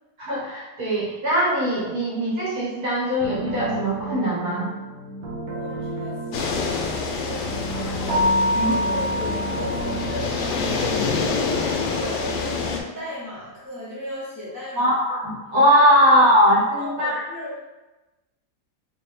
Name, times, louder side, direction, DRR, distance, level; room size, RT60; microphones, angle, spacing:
voice 1, 0.2-4.7 8.5-8.7 14.8-17.1, equal, 55° right, -7 dB, 1.5 m, -20 dB
sound 1, 3.2-11.7, right 2 dB, 85° right, 1.4 m, -33 dB
voice 2, 5.4-8.3 8.6-14.9 16.8-17.6, equal, 15° left, -10 dB, 0.8 m, -36 dB
sound 2, 6.3-12.8, left 4 dB, 75° left, 1.1 m, -27 dB
Keyboard (musical), 8.1-10.5, left 1 dB, 35° right, 1.6 m, -25 dB
3.3 x 3.2 x 3.4 m, 1.1 s
omnidirectional pair, 1.9 m